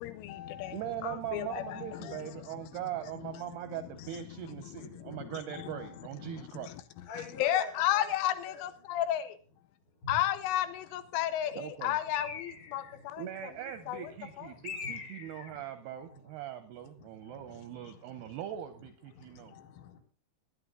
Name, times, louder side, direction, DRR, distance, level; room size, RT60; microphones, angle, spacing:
voice 1, 0.0-2.2 5.5-5.7 7.4-9.2 10.1-12.8 13.1-13.2 13.9-14.0, left 12 dB, 85° left, 10 dB, 3.4 m, -32 dB
voice 2, 0.7-6.8 11.6-12.0 13.2-19.6, right 11 dB, 80° right, 10 dB, 2.4 m, -41 dB
voice 3, 7.1-8.2 8.5-8.6 10.0-10.2 12.7-13.0 14.8-15.0 16.2-16.3 19.1-20.0, left 2 dB, 65° left, 1 dB, 7.2 m, -44 dB
Bird, 12.1-13.0 14.6-15.6, left 6 dB, 40° left, 2.3 m, -42 dB
19.5 x 9.7 x 3.7 m, 0.40 s
omnidirectional pair, 5.6 m